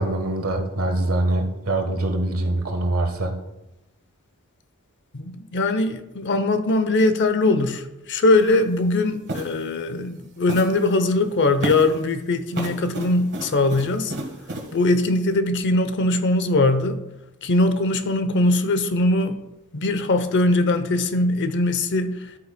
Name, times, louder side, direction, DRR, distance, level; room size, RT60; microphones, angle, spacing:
voice 1, 0.0-3.4, right 1 dB, 75° right, 1.3 m, -24 dB
voice 2, 5.1-14.1 14.7-17.0 17.4-19.4 19.7-22.3, left 2 dB, 55° left, 0.7 m, -21 dB
sound 1, 8.4-8.5 9.3-9.6 10.5-10.9 11.6-12.0 12.5-14.7, right 1 dB, 50° right, 1.5 m, -32 dB
11.5 x 8.4 x 2.2 m
head